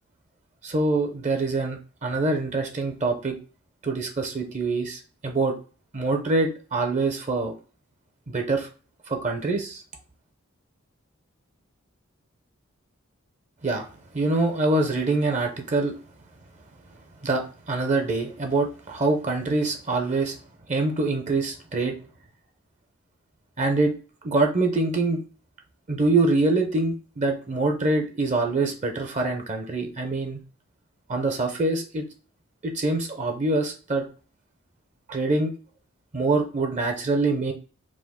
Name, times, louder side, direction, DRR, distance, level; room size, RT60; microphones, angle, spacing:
voice 1, 0.6-3.4 3.8-5.5 5.9-7.5 8.3-8.7 9.1-9.8 13.6-13.9 14.1-16.0 17.2-20.3 20.7-21.9 23.6-23.9 24.2-25.2 25.9-30.4 31.1-32.0 32.6-34.0 35.1-35.5 36.1-37.5, right 2 dB, 35° right, 4 dB, 0.6 m, -25 dB
4.9 x 2.0 x 3.6 m, 0.38 s
head